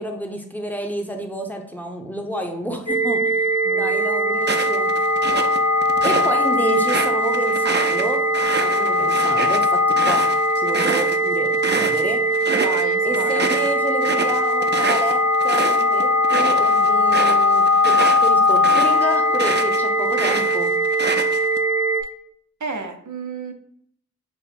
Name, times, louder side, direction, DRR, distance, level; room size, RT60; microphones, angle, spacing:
voice 1, 0.0-3.5 3.7-4.9 6.0-8.2 8.6-10.2 10.6-12.2 13.0-18.0 18.2-20.7, right 1 dB, 5° left, 4 dB, 0.7 m, -29 dB
sound 1, 2.9-22.0, left 1 dB, 65° left, 0.8 m, -20 dB
sound 2, 4.4-6.3 6.7-12.0 12.3-12.8 13.1-19.8 20.1-21.6, right 4 dB, 40° right, 0.4 m, -27 dB
voice 2, 12.5-13.5 22.6-23.5, right 4 dB, 80° right, 6 dB, 0.6 m, -31 dB
5.6 x 2.0 x 4.2 m, 0.67 s
wide cardioid pair, 50°, 29 cm